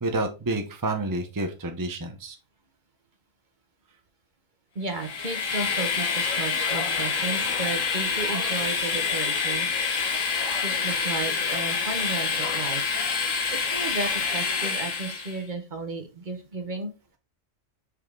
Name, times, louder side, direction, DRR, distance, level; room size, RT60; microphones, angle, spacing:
voice 1, 0.0-2.4, right 2 dB, 20° right, 5 dB, 0.6 m, -29 dB
voice 2, 4.7-9.8 10.6-12.9 13.5-16.9, right 3 dB, 40° right, 7 dB, 1.1 m, -34 dB
Train, 4.9-15.4, left 5 dB, 80° left, 1.6 m, -27 dB
5.5 x 4.8 x 3.8 m, 0.28 s
omnidirectional pair, 1.3 m